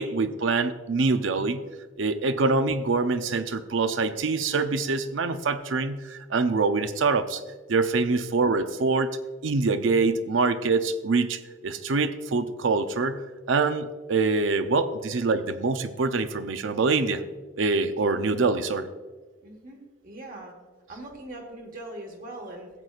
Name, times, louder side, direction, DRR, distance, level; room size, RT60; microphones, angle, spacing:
voice 1, 0.0-1.6 2.0-7.4 7.7-9.1 9.4-17.2 17.6-18.9, right 3 dB, 75° right, 10 dB, 0.5 m, -25 dB
voice 2, 19.4-20.5 20.9-22.7, right 1 dB, 45° right, 2 dB, 1.4 m, -41 dB
15.0 x 7.9 x 2.4 m, 1.3 s
head